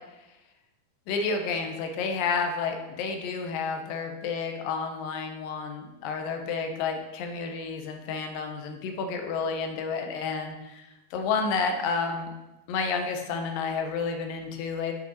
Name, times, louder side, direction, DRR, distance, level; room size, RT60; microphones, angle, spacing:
voice 1, 1.1-12.3 12.7-14.9, left 5 dB, 75° left, 4 dB, 2.3 m, -30 dB
7.9 x 5.6 x 4.3 m, 1.0 s
omnidirectional pair, 4.4 m